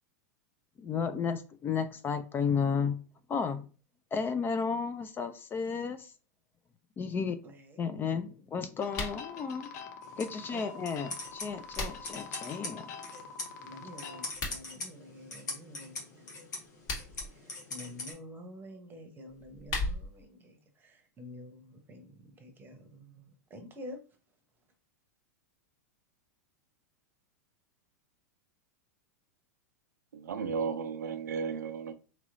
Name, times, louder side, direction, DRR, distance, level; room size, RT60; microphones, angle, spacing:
voice 1, 0.8-3.0 3.3-3.7 4.1-6.1 7.0-7.4 7.8-9.7 10.2-12.9, left 6 dB, 25° left, 0.4 m, -33 dB
voice 2, 7.4-7.8 10.5-10.6 13.6-14.2 14.5-16.4 17.2-24.0, left 1 dB, 20° right, 0.9 m, -49 dB
sound 1, 8.8-14.3, left 5 dB, 65° left, 0.6 m, -45 dB
sound 2, 8.9-9.2 11.3-12.2 14.2-14.6 16.6-17.3 19.3-20.3, left 2 dB, 45° left, 1.6 m, -37 dB
sound 3, 10.0-18.1, left 2 dB, 85° left, 1.3 m, -43 dB
voice 3, 30.1-31.9, right 6 dB, 85° right, 0.4 m, -34 dB
3.0 x 2.9 x 2.5 m
hypercardioid pair, 105°, 9 cm